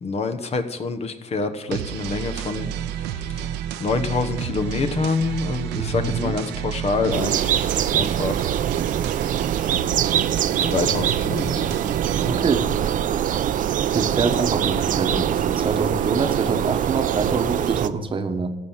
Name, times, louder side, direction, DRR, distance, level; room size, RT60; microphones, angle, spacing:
voice 1, 0.0-2.7 3.8-7.5 7.9-8.5 10.6-11.7, left 4 dB, 40° left, 8 dB, 1.0 m, -26 dB
sound 1, 1.7-12.4, right 10 dB, 90° right, 0.7 m, -30 dB
voice 2, 5.8-6.4 12.1-12.7 13.9-18.5, right 4 dB, 30° right, 6 dB, 1.1 m, -25 dB
sound 2, 7.1-17.9, right 10 dB, 50° right, 0.6 m, -23 dB
14.0 x 5.6 x 8.8 m, 1.1 s
cardioid pair, 110°, 17 cm